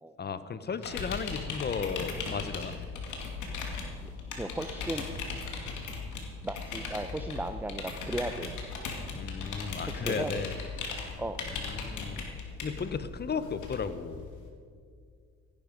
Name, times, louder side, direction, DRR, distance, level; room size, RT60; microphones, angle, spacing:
voice 1, 0.2-2.8 9.1-10.6 11.5-12.2 12.6-14.2, left 6 dB, 35° left, 13 dB, 0.8 m, -35 dB
sound 1, 0.8-14.5, left 4 dB, 80° left, 2.4 m, -38 dB
voice 2, 4.4-5.0 6.4-8.5 8.9-9.0 9.9-10.4 11.2-11.4, right 2 dB, 5° right, 8 dB, 0.5 m, -36 dB
15.5 x 11.0 x 5.2 m, 2.2 s
cardioid pair, 90°, 30 cm